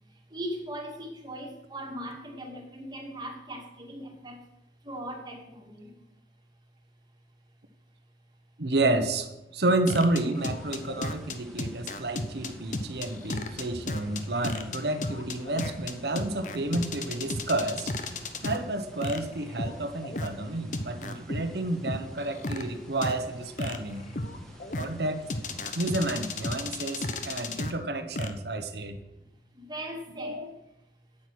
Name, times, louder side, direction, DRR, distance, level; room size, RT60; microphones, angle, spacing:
voice 1, 0.3-4.4 4.9-5.9 29.6-30.4, right 1 dB, 25° right, 1 dB, 2.0 m, -39 dB
voice 2, 8.6-17.9 18.4-24.1 24.8-25.2 25.7-29.0 30.2-30.5, right 2 dB, 65° right, 8 dB, 1.0 m, -30 dB
sound 1, 9.9-18.6 19.0-20.3 20.7-21.4 21.9-22.6 23.0-23.1 23.6-24.8 25.3-27.7 28.2-28.3, left 2 dB, 45° left, 0.9 m, -33 dB
sound 2, 10.3-26.7, equal, 5° left, 1.9 m, -51 dB
8.8 x 8.6 x 6.4 m, 0.90 s
head